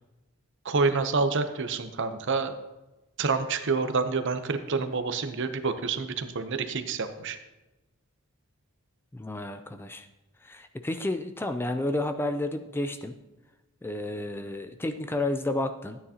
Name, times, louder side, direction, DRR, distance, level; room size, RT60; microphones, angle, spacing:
voice 1, 0.6-2.5 3.2-7.4, right 4 dB, 55° right, 9 dB, 0.7 m, -28 dB
voice 2, 9.1-10.1 10.4-13.1 13.8-16.0, left 2 dB, 10° left, 8 dB, 0.3 m, -31 dB
13.5 x 9.4 x 2.9 m, 1.1 s
head